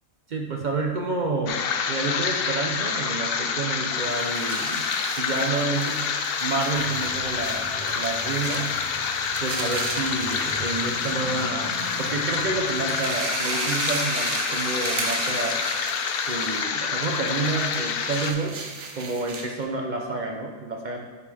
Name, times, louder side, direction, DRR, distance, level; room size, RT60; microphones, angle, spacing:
voice 1, 0.3-1.6 1.9-4.9 5.2-6.1 6.4-8.7 9.4-15.6 16.3-18.6 18.9-21.1, right 3 dB, 55° right, 1 dB, 0.5 m, -29 dB
sound 1, 1.5-18.3, left 6 dB, 65° left, 0.6 m, -27 dB
sound 2, 3.8-19.6, right 4 dB, 70° right, 1.2 m, -36 dB
sound 3, 6.7-13.0, right 1 dB, 25° left, 0.7 m, -42 dB
8.4 x 5.2 x 3.4 m, 1.3 s
omnidirectional pair, 1.4 m